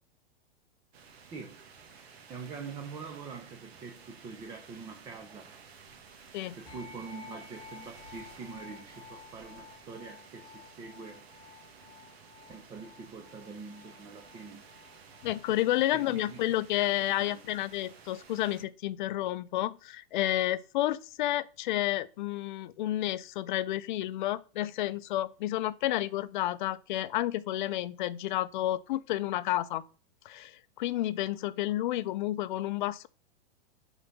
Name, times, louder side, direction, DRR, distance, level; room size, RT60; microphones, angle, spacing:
sound 1, 0.9-18.6, right 5 dB, 80° right, 1.5 m, -54 dB
voice 1, 2.3-5.5 6.6-11.2 12.5-14.7 15.5-15.6 15.9-16.6 17.2-17.4, right 5 dB, 15° right, 0.5 m, -44 dB
sound 2, 6.7-16.3, left 6 dB, 10° left, 1.3 m, -53 dB
voice 2, 15.2-29.8 30.3-33.1, left 14 dB, 50° left, 0.5 m, -31 dB
5.3 x 4.0 x 5.7 m
supercardioid pair, 155°, 31 cm